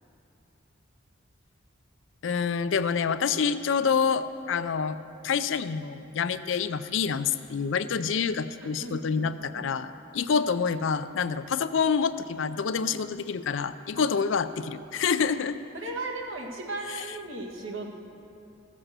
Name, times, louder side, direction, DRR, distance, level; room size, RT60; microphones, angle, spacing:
voice 1, 2.2-5.0 5.2-15.6, left 6 dB, 70° left, 13 dB, 0.4 m, -27 dB
voice 2, 8.6-9.3 9.6-9.7 13.9-14.2 15.7-17.9, right 2 dB, 85° right, 1 dB, 1.6 m, -36 dB
15.5 x 7.4 x 6.6 m, 2.7 s
head